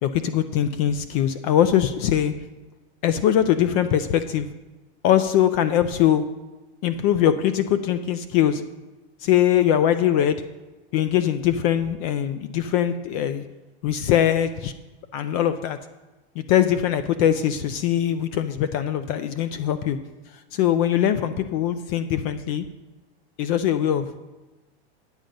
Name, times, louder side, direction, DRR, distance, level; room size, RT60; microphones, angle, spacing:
voice 1, 0.0-2.4 3.0-4.5 5.0-6.2 6.8-8.6 9.2-10.4 10.9-13.4 13.8-14.7 15.1-15.8 16.4-20.0 20.5-22.6 23.4-24.1, left 10 dB, 35° left, 11 dB, 0.4 m, -22 dB
8.9 x 7.7 x 5.2 m, 1.1 s
supercardioid pair, 140°, 33 cm